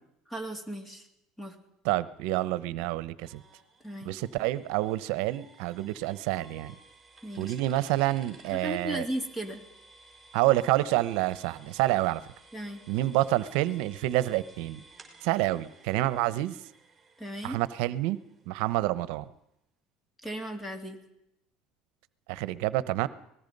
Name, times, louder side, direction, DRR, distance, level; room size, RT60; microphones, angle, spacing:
voice 1, 0.3-1.1 1.4-1.6 3.8-4.1 7.2-7.6 8.5-9.6 12.5-12.8 17.2-17.6 20.2-21.0, right 1 dB, 10° left, 7 dB, 3.1 m, -36 dB
voice 2, 1.8-3.4 4.0-6.7 7.4-9.0 10.3-12.2 12.9-14.8 15.2-16.6 17.4-18.2 18.5-19.2 22.3-23.1, right 16 dB, 75° right, 17 dB, 0.9 m, -28 dB
sound 1, 3.2-18.9, right 3 dB, 10° right, 5.6 m, -56 dB
25.5 x 19.5 x 5.4 m, 0.81 s
cardioid pair, 135°, 0 cm